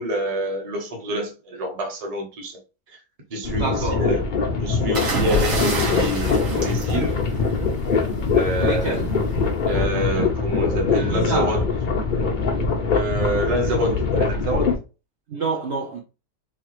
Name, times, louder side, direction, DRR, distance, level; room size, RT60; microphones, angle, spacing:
voice 1, 0.0-2.6 2.9-3.0 3.3-4.2 4.6-7.1 8.3-9.0 9.6-11.6 12.2-14.7, right 1 dB, 25° right, 0.9 m, -27 dB
sound 1, 3.4-14.8, left 4 dB, 85° left, 0.4 m, -23 dB
voice 2, 3.5-4.1 8.6-9.1 10.9-11.6 15.3-16.0, right 4 dB, 70° right, 0.6 m, -28 dB
sound 2, 4.9-7.7 8.9-9.2, right 1 dB, 50° right, 1.6 m, -27 dB
3.9 x 2.8 x 3.0 m
omnidirectional pair, 1.9 m